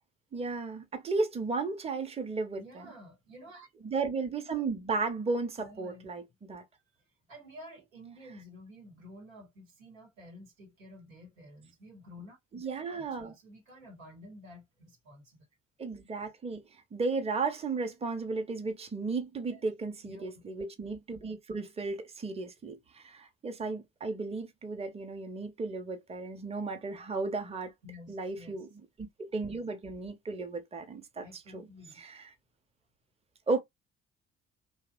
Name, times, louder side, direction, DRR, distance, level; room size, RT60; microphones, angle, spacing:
voice 1, 0.3-2.9 3.8-6.2 6.5-6.6 12.5-13.3 15.8-27.7 28.1-31.7 31.9-32.3 33.5-33.6, right 3 dB, 15° right, 0.6 m, -34 dB
voice 2, 2.6-3.7 5.6-6.2 7.3-12.6 12.9-15.4 19.5-19.6 20.0-20.4 27.8-28.6 31.2-32.0, left 1 dB, 90° right, 1.0 m, -51 dB
2.8 x 2.0 x 2.4 m
figure-of-eight pair, 45°, 39 cm